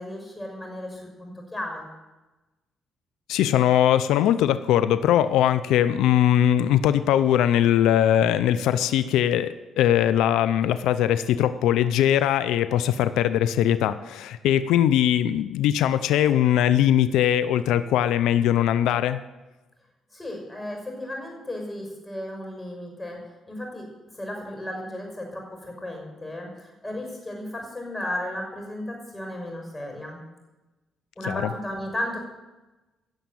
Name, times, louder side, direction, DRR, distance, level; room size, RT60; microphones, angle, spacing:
voice 1, 0.0-1.9 20.1-23.2 23.5-23.9 24.1-30.2 31.2-32.2, left 1 dB, 15° left, 1 dB, 6.0 m, -34 dB
voice 2, 3.3-19.2 31.3-31.4, left 11 dB, 90° left, 13 dB, 0.5 m, -21 dB
16.0 x 7.1 x 7.7 m, 1.1 s
cardioid pair, 90°, 0 cm